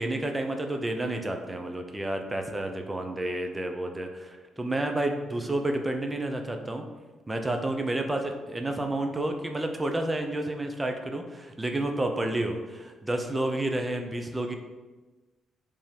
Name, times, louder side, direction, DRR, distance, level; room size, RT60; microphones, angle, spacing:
voice 1, 0.0-6.9 7.3-14.6, right 1 dB, 15° right, 4 dB, 0.7 m, -30 dB
5.2 x 3.6 x 5.2 m, 1.2 s
cardioid pair, 90°, 0 cm